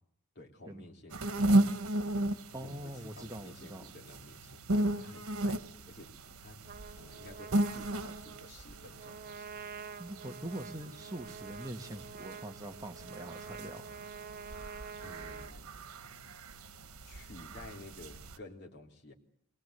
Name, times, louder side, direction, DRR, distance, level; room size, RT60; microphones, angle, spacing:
voice 1, 0.4-1.5 2.5-6.1 6.4-6.6 7.0-9.5 15.0-15.7 17.0-19.1, left 2 dB, 50° left, -1 dB, 3.4 m, -52 dB
sound 1, 1.1-18.4, right 1 dB, 90° right, 1.4 m, -36 dB
voice 2, 2.5-3.8 10.0-13.9, right 1 dB, 15° right, 3 dB, 1.6 m, -43 dB
Trumpet, 6.6-15.5, right 5 dB, 40° right, 0.9 m, -47 dB
23.0 x 20.0 x 8.1 m, 0.70 s
head